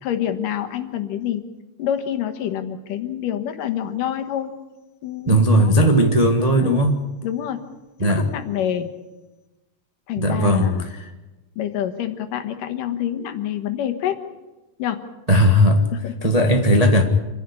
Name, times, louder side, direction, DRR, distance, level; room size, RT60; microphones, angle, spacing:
voice 1, 0.0-1.5 1.8-4.5 5.0-6.0 6.6-6.8 7.2-7.6 8.0-8.9 10.1-10.9 11.6-14.2 14.8-15.0 15.9-16.3, left 10 dB, 75° left, 7 dB, 2.9 m, -27 dB
voice 2, 5.3-6.9 8.0-8.2 10.2-10.7 15.3-15.8 16.2-17.0, equal, 45° right, 3 dB, 0.5 m, -16 dB
27.5 x 11.0 x 10.0 m, 1.1 s
omnidirectional pair, 3.9 m